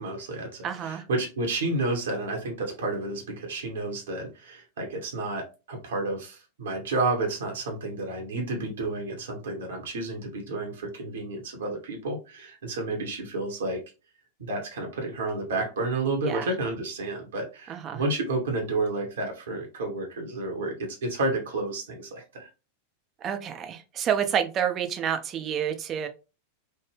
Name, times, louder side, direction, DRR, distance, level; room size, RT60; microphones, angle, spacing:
voice 1, 0.0-13.8 14.4-22.5, right 2 dB, 65° right, 1 dB, 0.9 m, -31 dB
voice 2, 0.6-1.0 16.2-16.5 17.7-18.0 23.2-26.1, right 8 dB, 30° right, 7 dB, 0.5 m, -29 dB
3.3 x 2.1 x 3.3 m, 0.30 s
figure-of-eight pair, 90°, 0 cm